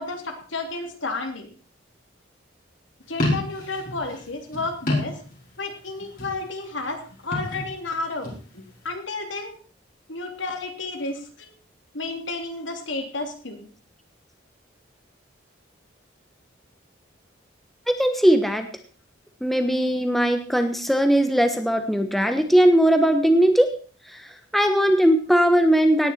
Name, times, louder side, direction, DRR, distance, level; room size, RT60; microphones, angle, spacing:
voice 1, 0.0-1.5 3.1-5.2 5.6-8.3 8.8-9.6 10.1-11.5 11.9-13.7, left 3 dB, 75° left, 4 dB, 2.9 m, -31 dB
sound 1, 3.1-5.7 6.0-6.6 7.2-8.4, left 1 dB, 45° left, 4.7 m, -29 dB
voice 2, 17.9-18.7 19.4-23.7 24.1-26.1, equal, ahead, 6 dB, 1.1 m, -19 dB
18.0 x 10.0 x 4.3 m, 0.41 s
head